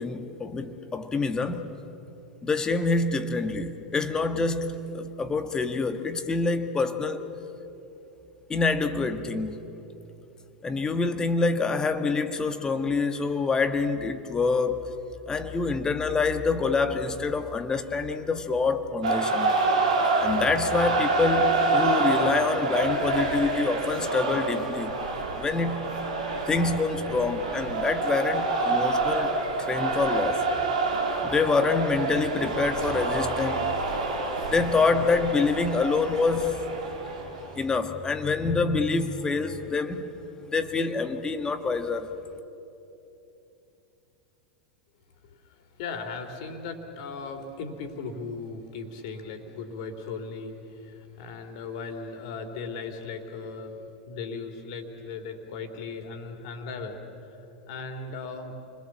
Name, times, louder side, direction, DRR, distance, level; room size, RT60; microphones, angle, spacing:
voice 1, 0.0-1.7 2.4-7.2 8.5-9.6 10.6-14.9 15.3-19.6 20.2-24.9 25.4-25.9 26.5-29.3 29.7-30.5 31.2-33.7 34.4-36.6 37.5-40.2 40.5-42.1, left 4 dB, 15° left, 8 dB, 1.6 m, -26 dB
sound 1, 19.0-37.6, right 3 dB, 65° right, 3.6 m, -27 dB
voice 2, 45.3-58.5, left 4 dB, 50° left, 6 dB, 3.1 m, -38 dB
29.5 x 21.5 x 7.3 m, 2.9 s
figure-of-eight pair, 85°, 4 cm